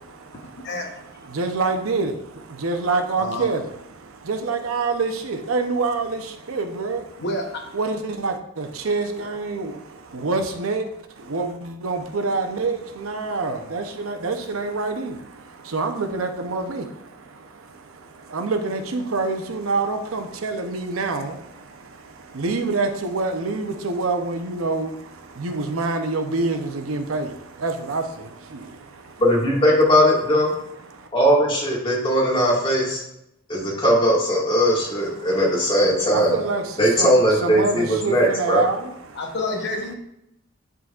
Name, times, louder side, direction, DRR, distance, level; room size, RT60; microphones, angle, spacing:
voice 1, 0.0-7.2 7.7-29.2 30.8-31.1 34.9-39.4, right 3 dB, 75° right, 6 dB, 0.7 m, -27 dB
voice 2, 3.2-3.5 7.2-7.7 39.1-39.9, left 2 dB, 55° left, 2 dB, 0.9 m, -28 dB
voice 3, 29.2-30.5 31.1-33.0 33.5-36.4 36.8-38.6, equal, 25° left, -4 dB, 1.9 m, -19 dB
10.5 x 3.8 x 2.4 m, 0.80 s
head